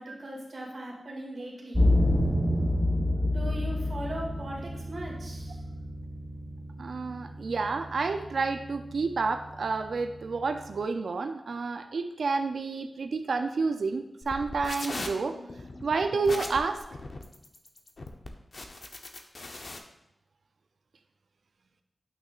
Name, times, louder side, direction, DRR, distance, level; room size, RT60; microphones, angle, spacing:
voice 1, 0.0-1.8 3.2-5.6, right 1 dB, 65° right, -2 dB, 2.0 m, -39 dB
sound 1, 1.7-10.8, left 1 dB, 15° right, 2.4 m, -30 dB
voice 2, 6.8-15.4 15.8-16.8, right 4 dB, 80° right, 7 dB, 0.4 m, -30 dB
sound 2, 14.2-19.8, left 2 dB, 55° left, 0.7 m, -39 dB
8.9 x 5.9 x 2.4 m, 0.87 s
wide cardioid pair, 85°, 0 cm